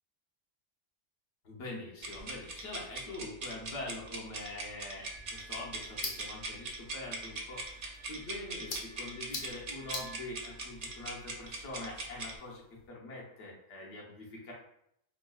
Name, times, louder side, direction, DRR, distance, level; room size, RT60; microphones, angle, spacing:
voice 1, 1.4-14.5, left 2 dB, 70° left, -3 dB, 1.2 m, -44 dB
sound 1, 2.0-12.4, right 2 dB, 50° right, 0.5 m, -41 dB
sound 2, 5.0-12.9, left 3 dB, 55° left, 0.9 m, -47 dB
Wind instrument woodwind instrument, 5.0-11.4 11.7-12.3, right 3 dB, 70° right, 1.6 m, -58 dB
5.2 x 2.3 x 2.3 m, 0.74 s
omnidirectional pair, 1.3 m